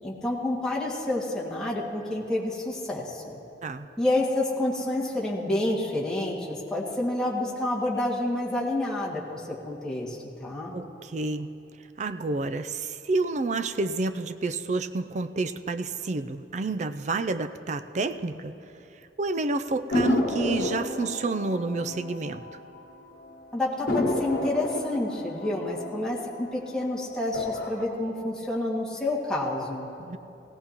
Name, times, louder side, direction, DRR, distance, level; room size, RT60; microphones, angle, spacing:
voice 1, 0.0-3.4 4.0-10.8 23.5-29.9, left 1 dB, 5° left, -6 dB, 2.0 m, -29 dB
voice 2, 10.7-11.5 12.0-18.6 19.2-22.4 30.0-30.2, right 3 dB, 40° right, 11 dB, 0.4 m, -29 dB
sound 1, 19.9-23.0 23.3-23.4 23.9-26.8 27.2-27.8, left 1 dB, 55° left, 1.3 m, -30 dB
18.0 x 17.5 x 3.0 m, 2.8 s
head